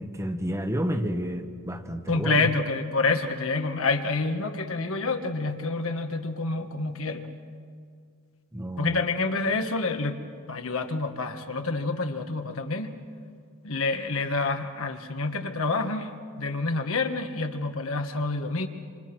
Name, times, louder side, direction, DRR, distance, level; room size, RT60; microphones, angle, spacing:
voice 1, 0.0-2.5 8.5-9.0, equal, 15° right, 7 dB, 1.1 m, -30 dB
voice 2, 2.1-7.3 8.8-10.2 10.5-12.9 13.6-18.7, left 3 dB, 65° left, 6 dB, 1.5 m, -28 dB
27.5 x 26.5 x 6.1 m, 2.1 s
head